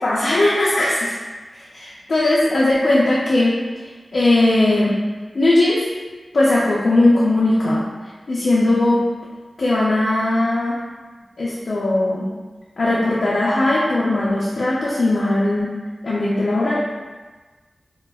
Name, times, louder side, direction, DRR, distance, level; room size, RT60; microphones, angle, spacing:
voice 1, 0.0-1.2 1.7-3.5 4.1-5.0 5.3-5.8 6.3-7.8 8.3-9.0 9.6-10.8 11.4-12.3 12.8-15.7 16.0-16.8, left 2 dB, 70° left, -7 dB, 0.5 m, -18 dB
4.9 x 2.0 x 2.3 m, 1.3 s
wide cardioid pair, 95°, 0 cm